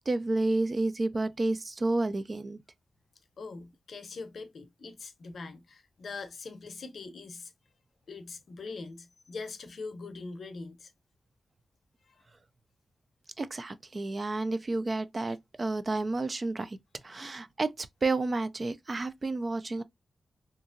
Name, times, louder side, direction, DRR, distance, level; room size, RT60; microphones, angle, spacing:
voice 1, 0.1-2.6 13.4-16.8 17.0-19.8, right 2 dB, 40° right, 0.3 m, -30 dB
voice 2, 3.4-7.5 8.1-10.9 12.1-12.2, left 4 dB, 65° left, 0.6 m, -42 dB
2.8 x 2.5 x 2.4 m
cardioid pair, 75°, 0 cm